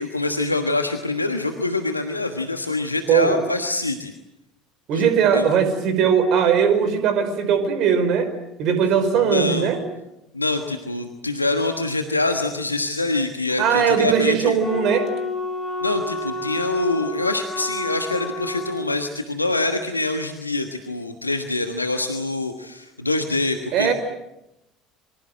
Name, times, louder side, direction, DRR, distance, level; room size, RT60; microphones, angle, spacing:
voice 1, 0.0-4.1 4.9-5.1 5.3-5.5 9.3-9.7 10.3-14.6 15.8-23.9, left 2 dB, 90° left, 6 dB, 1.3 m, -25 dB
voice 2, 3.1-3.4 4.9-8.3 8.6-9.8 13.6-15.1 23.7-23.9, right 7 dB, 50° right, 10 dB, 5.0 m, -19 dB
Wind instrument woodwind instrument, 14.6-18.9, left 2 dB, 25° left, 5.4 m, -30 dB
27.5 x 24.0 x 7.8 m, 0.88 s
figure-of-eight pair, 65°, 0 cm